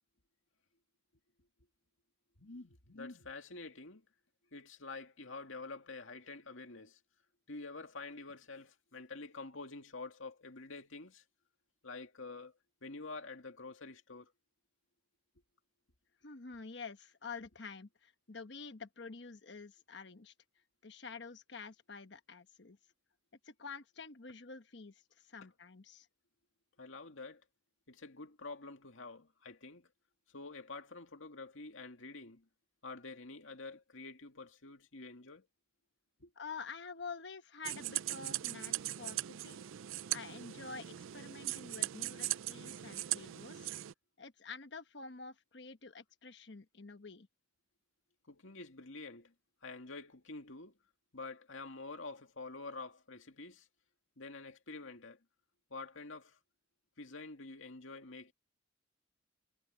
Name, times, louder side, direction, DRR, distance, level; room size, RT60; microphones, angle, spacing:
voice 1, 2.4-4.1 4.5-7.0 7.5-11.2 11.8-12.5 12.8-14.3 25.4-25.5 26.8-27.4 27.9-29.9 30.3-32.5 32.8-35.5 36.2-36.3 48.3-49.3 49.6-50.8 51.1-53.7 54.2-55.2 55.7-56.4 57.0-58.3, left 3 dB, 80° left, 2.3 m, -48 dB
voice 2, 16.2-20.3 20.8-22.8 23.4-26.1 36.4-39.6 40.1-43.7 44.2-47.3, left 4 dB, 60° left, 1.1 m, -48 dB
sound 1, 37.6-43.9, right 15 dB, 85° right, 0.4 m, -39 dB
head